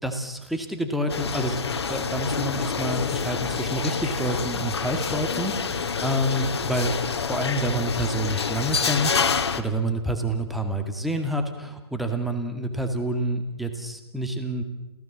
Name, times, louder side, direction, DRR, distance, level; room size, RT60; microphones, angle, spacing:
voice 1, 0.0-1.6 1.9-14.6, right 1 dB, ahead, 5 dB, 2.1 m, -28 dB
sound 1, 1.1-9.6, left 5 dB, 70° left, 1.9 m, -27 dB
28.5 x 16.5 x 7.4 m, 1.0 s
figure-of-eight pair, 125°, 14 cm